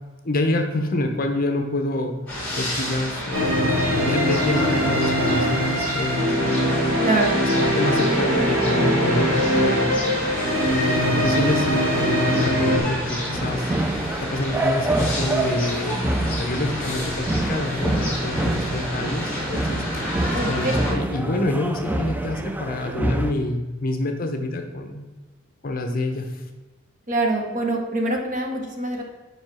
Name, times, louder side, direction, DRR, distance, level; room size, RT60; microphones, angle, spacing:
voice 1, 0.2-2.2 2.6-6.7 7.7-9.9 10.6-13.7 14.2-19.8 20.3-25.1 25.6-26.3, left 1 dB, 45° left, 5 dB, 0.8 m, -26 dB
sound 1, 2.3-20.9, equal, 5° left, 2.4 m, -30 dB
sound 2, 3.3-12.8, equal, 80° right, 2.3 m, -22 dB
voice 2, 7.0-7.4 20.3-20.7 27.1-29.0, right 2 dB, 35° right, 2 dB, 1.0 m, -24 dB
sound 3, 13.3-23.3, right 1 dB, 10° right, 0.3 m, -27 dB
5.2 x 4.9 x 6.0 m, 1.3 s
head